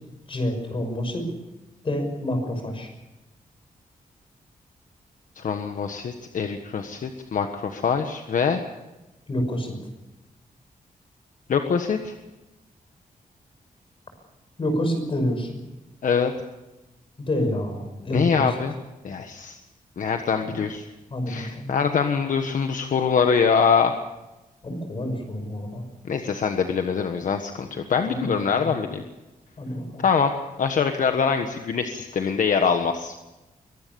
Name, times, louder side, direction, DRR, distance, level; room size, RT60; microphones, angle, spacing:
voice 1, 0.3-1.3 1.8-2.9 9.3-9.8 14.6-15.5 17.3-18.5 20.4-20.6 21.1-21.7 24.6-25.9 28.1-28.8 29.6-30.0, left 1 dB, 40° left, 6 dB, 6.2 m, -28 dB
voice 2, 5.4-8.6 11.5-12.1 16.0-16.3 18.1-18.7 19.0-19.6 20.0-20.8 21.3-23.9 26.1-29.0 30.0-30.3 30.6-33.1, left 6 dB, 65° left, 6 dB, 1.4 m, -24 dB
23.0 x 19.0 x 7.0 m, 1.0 s
wide cardioid pair, 150°, 14 cm